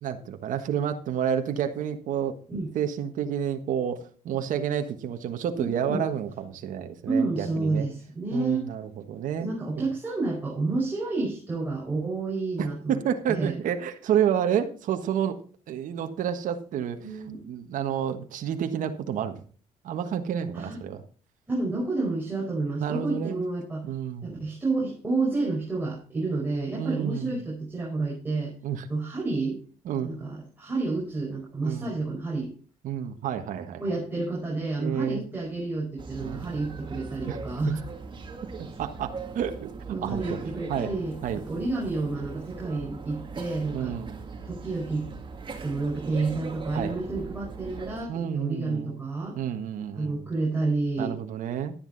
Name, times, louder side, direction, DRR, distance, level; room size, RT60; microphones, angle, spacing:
voice 1, 0.0-2.4 2.7-7.9 8.3-9.5 9.8-9.9 12.6-15.4 15.7-17.0 17.4-19.4 19.8-21.0 22.8-23.4 23.8-24.4 26.8-27.4 28.6-28.9 29.8-30.1 31.6-31.9 32.8-33.8 34.8-35.2 36.2-36.5 37.3-37.4 38.6-40.4 40.7-40.9 41.2-41.4 43.7-44.2 46.7-47.0 48.1-49.0 49.3-50.3 51.0-51.7, right 9 dB, 65° right, 6 dB, 1.5 m, -30 dB
voice 2, 7.1-8.7 9.4-13.0 13.3-13.5 17.0-17.4 20.5-20.8 21.5-23.9 24.2-28.5 28.9-29.6 30.0-32.5 33.8-37.8 39.9-43.9 44.4-45.1 45.5-49.4 49.9-51.2, right 3 dB, 15° right, -4 dB, 4.8 m, -30 dB
sound 1, 36.0-48.1, right 4 dB, 35° right, 2.6 m, -40 dB
12.0 x 10.0 x 4.0 m, 0.41 s
supercardioid pair, 80°, 14 cm